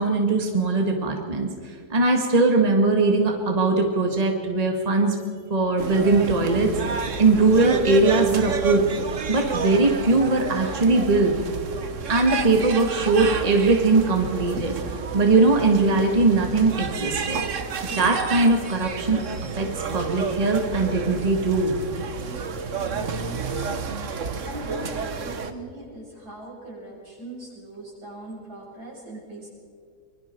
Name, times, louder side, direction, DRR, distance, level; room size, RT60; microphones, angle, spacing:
voice 1, 0.0-1.5 1.9-5.2 5.5-6.7 7.2-8.8 9.3-11.3 12.1-14.7 15.1-17.4 18.0-19.2 19.6-19.7 19.9-21.7, right 3 dB, 25° right, 2 dB, 1.9 m, -20 dB
sound 1, 5.8-25.5, right 5 dB, 50° right, 1.5 m, -31 dB
voice 2, 24.4-29.5, right 1 dB, 70° right, -4 dB, 8.1 m, -39 dB
25.5 x 23.0 x 4.6 m, 2.2 s
omnidirectional pair, 1.7 m